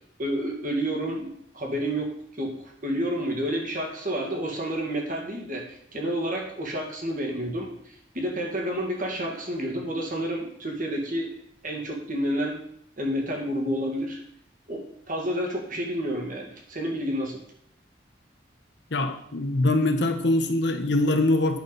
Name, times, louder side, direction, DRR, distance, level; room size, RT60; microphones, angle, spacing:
voice 1, 0.2-2.1 2.4-2.6 2.8-11.3 11.6-12.6 13.0-14.2 14.7-17.4, equal, 45° right, 0 dB, 2.1 m, -30 dB
voice 2, 18.9-21.6, left 2 dB, 65° left, 6 dB, 1.1 m, -23 dB
9.0 x 5.9 x 5.4 m, 0.68 s
head